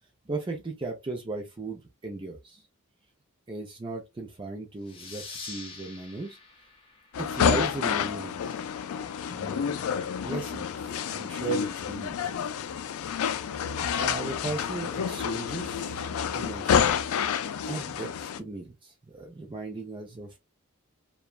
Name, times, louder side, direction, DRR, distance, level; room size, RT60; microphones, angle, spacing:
voice 1, 0.3-2.6 3.5-6.4 7.2-8.7 9.3-9.7 10.2-12.5 14.0-16.9 17.7-20.4, right 3 dB, 25° right, 0.4 m, -37 dB
sound 1, 4.8-8.1, left 4 dB, 25° left, 0.7 m, -45 dB
sound 2, 7.1-18.4, left 7 dB, 90° left, 0.3 m, -29 dB
2.8 x 2.2 x 2.2 m
head